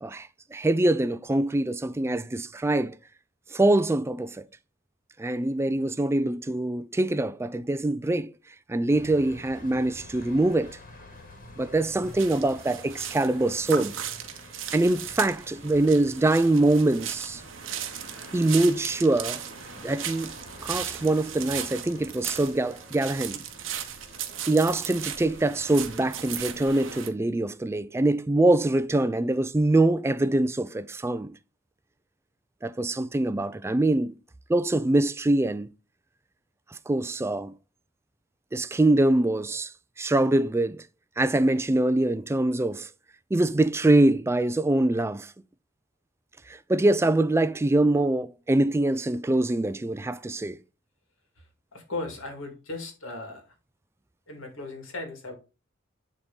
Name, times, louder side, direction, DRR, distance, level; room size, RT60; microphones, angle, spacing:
voice 1, 0.0-2.9 3.5-4.5 5.2-8.3 8.7-10.8 11.6-14.0 14.7-17.4 18.3-19.4 19.8-20.4 20.6-23.4 24.5-31.3 32.6-34.1 34.5-35.7 36.9-37.6 38.5-39.7 40.0-40.8 41.2-42.9 43.3-45.3 46.5-50.6, right 2 dB, 15° right, 0.3 m, -24 dB
sound 1, 8.9-26.5, left 2 dB, 45° left, 2.0 m, -49 dB
sound 2, 12.0-27.1, right 9 dB, 70° right, 0.9 m, -37 dB
voice 2, 51.7-53.5 54.3-55.3, left 2 dB, 90° left, 2.3 m, -37 dB
9.8 x 3.6 x 3.9 m
head